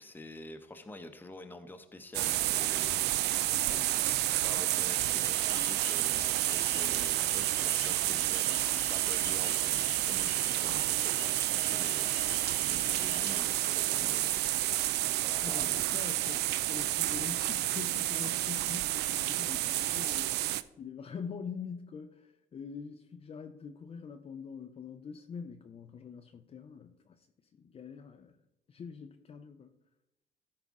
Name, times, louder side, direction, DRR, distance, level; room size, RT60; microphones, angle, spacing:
voice 1, 0.0-3.5 4.1-12.2 12.7-14.3 15.2-16.0, left 2 dB, 10° left, 0.8 m, -48 dB
sound 1, 2.1-20.6, right 15 dB, 80° right, 0.4 m, -30 dB
voice 2, 3.5-3.9 15.4-20.5 20.8-27.3 27.5-28.4 28.7-29.7, left 6 dB, 35° left, 0.5 m, -44 dB
sound 2, 5.0-13.4, left 10 dB, 90° left, 0.7 m, -48 dB
13.0 x 4.9 x 3.6 m
cardioid pair, 110°, 17 cm